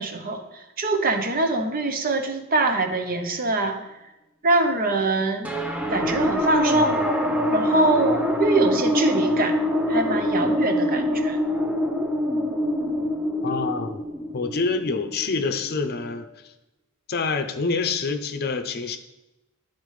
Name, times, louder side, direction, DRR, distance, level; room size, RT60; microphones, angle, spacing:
voice 1, 0.0-3.8 4.4-5.5 5.9-6.9 7.5-9.6 9.9-11.4, right 2 dB, 40° right, 6 dB, 0.8 m, -24 dB
sound 1, 5.4-16.1, left 1 dB, 5° right, 0.7 m, -24 dB
voice 2, 13.4-14.0 14.3-16.3 17.1-19.0, left 4 dB, 45° left, 7 dB, 0.6 m, -26 dB
12.5 x 4.3 x 3.2 m, 0.98 s
head